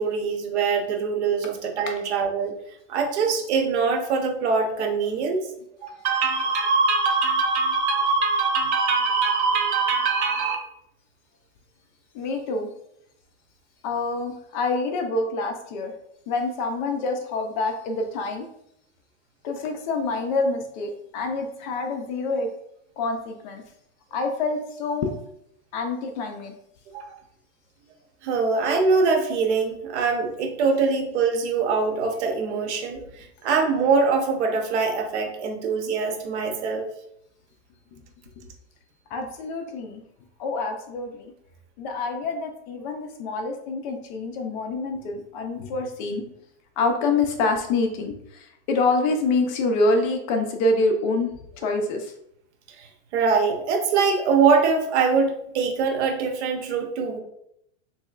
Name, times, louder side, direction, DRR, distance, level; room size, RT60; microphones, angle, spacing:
voice 1, 0.0-2.5 2.9-5.4 5.8-10.6 26.9-27.1 28.2-36.9 52.8-52.9 53.1-57.2, right 4 dB, 80° right, 4 dB, 0.9 m, -23 dB
voice 2, 12.1-12.7 13.8-15.9 16.3-18.5 19.4-22.5 23.0-23.6 24.1-25.2 25.7-26.5 37.9-38.0 39.1-40.0 40.4-41.3 41.8-46.2 46.8-51.3 51.6-52.1, left 3 dB, 45° left, 4 dB, 0.5 m, -26 dB
4.0 x 3.0 x 2.4 m, 0.75 s
supercardioid pair, 155°, 34 cm